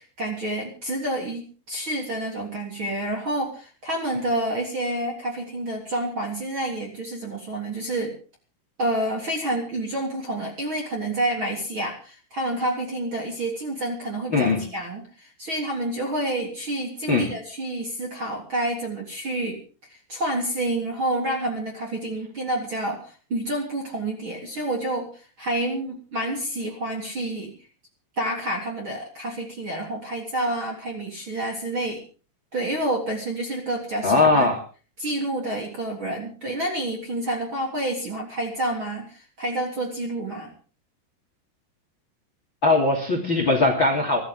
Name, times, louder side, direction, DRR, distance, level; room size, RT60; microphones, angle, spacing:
voice 1, 0.0-8.1 8.8-19.6 20.1-27.5 28.2-32.0 32.5-34.5 35.0-40.5, right 1 dB, 30° right, -2 dB, 3.2 m, -29 dB
voice 2, 34.0-34.6 42.6-44.2, left 3 dB, 30° left, 5 dB, 2.8 m, -20 dB
24.0 x 14.0 x 3.8 m, 0.39 s
omnidirectional pair, 6.0 m